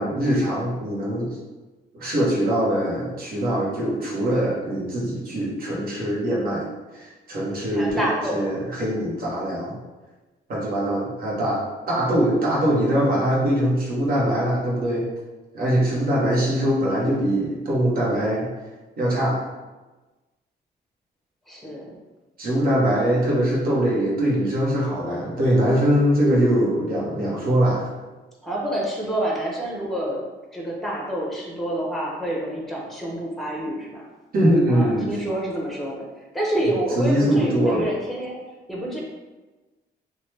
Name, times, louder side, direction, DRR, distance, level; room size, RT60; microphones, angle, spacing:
voice 1, 0.0-1.4 1.9-6.6 6.9-8.0 8.3-9.8 10.5-15.1 15.5-18.5 19.0-19.5 22.4-27.9 34.3-35.2 37.0-37.9, equal, 55° right, -5 dB, 1.0 m, -22 dB
voice 2, 7.7-8.4 21.5-21.9 28.4-30.2 30.5-34.1 34.7-36.1 36.3-38.4 38.7-39.0, right 1 dB, ahead, -2 dB, 0.8 m, -28 dB
2.9 x 2.2 x 3.1 m, 1.2 s
cardioid pair, 95°, 18 cm